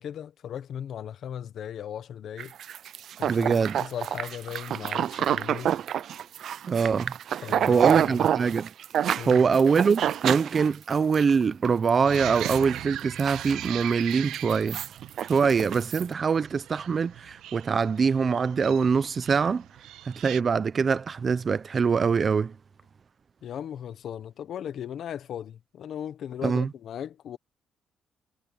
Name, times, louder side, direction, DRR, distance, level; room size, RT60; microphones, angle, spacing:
voice 1, 0.0-2.5 3.2-5.7 7.4-8.2 9.2-9.4 23.4-27.4, left 9 dB, 65° left, 1.1 m, -37 dB
sound 1, 2.4-11.3 11.7-11.9 12.1-12.7 13.0-14.0 14.3-16.0, right 10 dB, 65° right, 0.5 m, -28 dB
voice 2, 3.3-3.8 6.7-7.1 7.7-8.7 9.3-14.8 15.3-19.6 20.1-22.5 26.4-26.7, right 5 dB, 40° right, 0.9 m, -23 dB
sound 2, 12.0-20.4, right 13 dB, 85° right, 1.4 m, -40 dB
cardioid pair, 90°, 0 cm